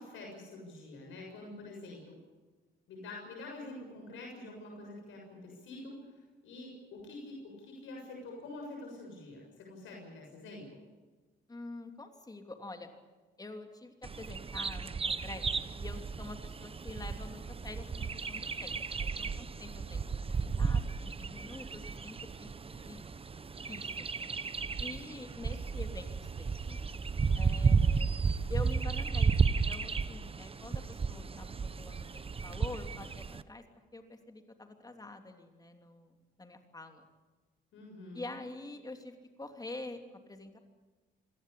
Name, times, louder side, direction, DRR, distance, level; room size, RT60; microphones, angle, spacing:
voice 1, 0.0-2.2 2.9-6.0 6.4-10.8 37.7-38.4, left 2 dB, 80° left, 0 dB, 7.0 m, -46 dB
voice 2, 11.5-12.9 13.4-15.5 15.8-23.0 23.7-24.1 24.8-26.8 27.3-28.1 28.5-33.6 33.9-37.1 38.1-40.6, left 2 dB, 20° left, 5 dB, 3.1 m, -46 dB
Bird vocalization bird call bird song, 14.0-33.4, right 5 dB, 30° right, 1.0 m, -33 dB
26.0 x 18.0 x 8.5 m, 1.3 s
cardioid pair, 90°, 20 cm